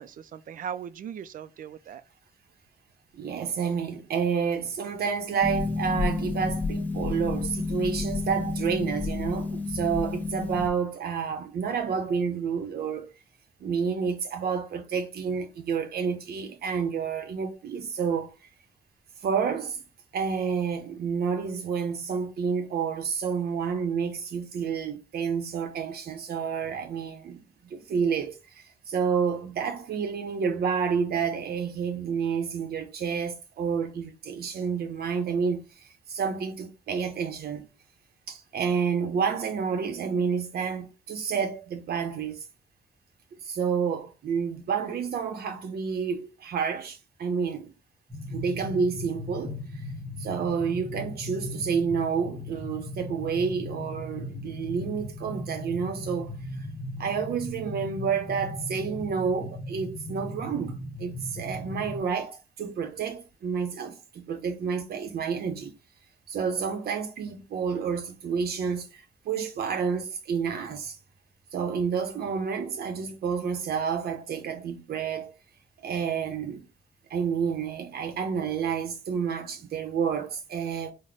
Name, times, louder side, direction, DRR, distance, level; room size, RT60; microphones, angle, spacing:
voice 1, 0.0-2.0, right 8 dB, 60° right, 0.4 m, -38 dB
voice 2, 3.1-13.1 13.6-18.3 19.2-19.8 20.1-35.6 36.1-37.7 38.3-42.4 43.4-47.7 48.3-49.6 50.2-56.3 57.0-65.7 66.3-71.0 71.5-75.3 75.8-76.7 77.1-80.9, right 6 dB, 90° right, 0.7 m, -29 dB
Harp, 5.4-10.7, left 3 dB, 10° left, 0.5 m, -30 dB
sound 1, 48.1-62.0, left 1 dB, 5° right, 1.2 m, -38 dB
3.9 x 2.1 x 3.4 m
wide cardioid pair, 175°, 16 cm